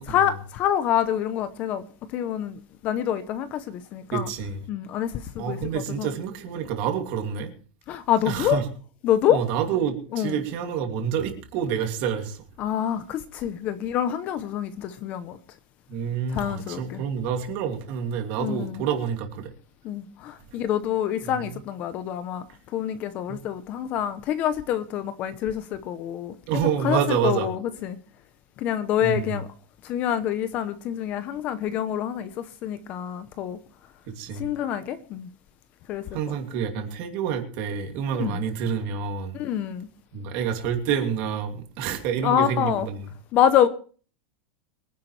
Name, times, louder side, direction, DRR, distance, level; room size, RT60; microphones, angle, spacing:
voice 1, 0.1-4.3 4.7-5.6 5.9-6.1 7.9-8.6 9.0-9.4 10.1-10.4 12.6-15.4 16.3-17.0 18.4-18.8 19.8-28.0 28.6-29.5 29.8-33.6 34.4-35.3 35.9-36.4 38.2-38.4 39.3-39.9 42.2-42.9 43.3-43.7, left 10 dB, 30° left, 0.8 m, -26 dB
voice 2, 4.1-4.6 5.4-7.5 8.3-8.6 9.3-12.4 15.9-19.5 21.2-21.5 23.3-23.4 26.5-27.5 29.0-29.4 34.1-34.5 36.1-39.4 40.1-43.0, right 8 dB, 40° right, 2.7 m, -28 dB
23.0 x 10.5 x 3.3 m
supercardioid pair, 175°, 5 cm